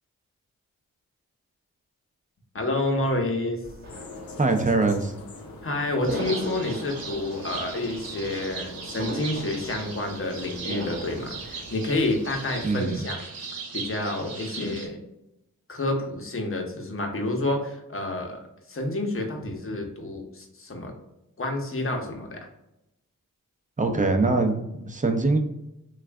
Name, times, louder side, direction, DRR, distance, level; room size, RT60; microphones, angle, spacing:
voice 1, 2.5-3.6 5.6-13.2 13.5-15.0 15.7-18.4 18.7-20.9 21.4-22.5, left 2 dB, 40° left, 2 dB, 0.9 m, -29 dB
sound 1, 3.6-12.7, right 1 dB, 40° right, 1.3 m, -40 dB
sound 2, 3.9-10.6, left 3 dB, 80° left, 0.7 m, -44 dB
voice 2, 4.4-5.1 12.6-13.1 23.8-25.4, right 3 dB, 20° right, 5 dB, 0.7 m, -23 dB
sound 3, 6.0-14.9, right 4 dB, 80° right, 0.9 m, -39 dB
3.1 x 2.4 x 3.4 m, 0.89 s
cardioid pair, 50°, 34 cm